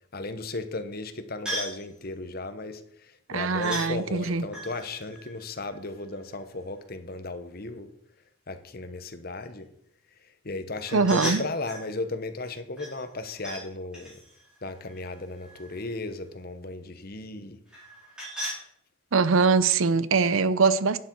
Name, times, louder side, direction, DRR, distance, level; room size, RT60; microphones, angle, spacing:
voice 1, 0.1-7.9 8.5-9.7 10.2-14.2 14.6-17.6, left 2 dB, 45° left, 1.0 m, -35 dB
sound 1, 1.5-1.8 3.6-3.9 4.5-6.3 10.8-11.9 12.8-13.6 13.9-15.8 17.7-18.6, equal, 5° right, 4.6 m, -37 dB
voice 2, 3.3-4.4 10.9-11.4 19.1-21.0, right 4 dB, 70° right, 0.6 m, -22 dB
11.5 x 9.3 x 4.6 m
head